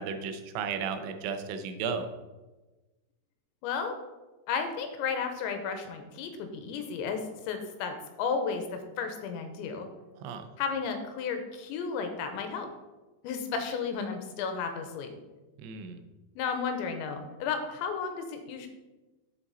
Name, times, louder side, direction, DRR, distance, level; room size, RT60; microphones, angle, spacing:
voice 1, 0.0-2.1 10.2-10.5 15.6-16.0, right 6 dB, 90° right, 8 dB, 3.2 m, -34 dB
voice 2, 3.6-4.0 4.5-7.2 7.5-9.9 10.6-12.7 13.2-15.1 16.4-18.7, left 5 dB, 90° left, 6 dB, 3.2 m, -33 dB
7.7 x 7.2 x 4.1 m, 1.1 s
omnidirectional pair, 5.2 m